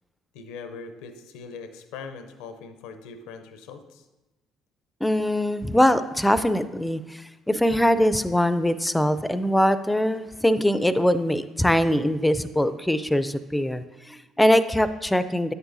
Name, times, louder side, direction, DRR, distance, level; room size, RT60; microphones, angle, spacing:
voice 1, 0.3-4.0, left 5 dB, 75° left, 9 dB, 0.6 m, -41 dB
voice 2, 5.0-15.5, equal, 10° left, 13 dB, 0.5 m, -22 dB
9.4 x 7.9 x 2.6 m, 1.1 s
hypercardioid pair, 50°, 0 cm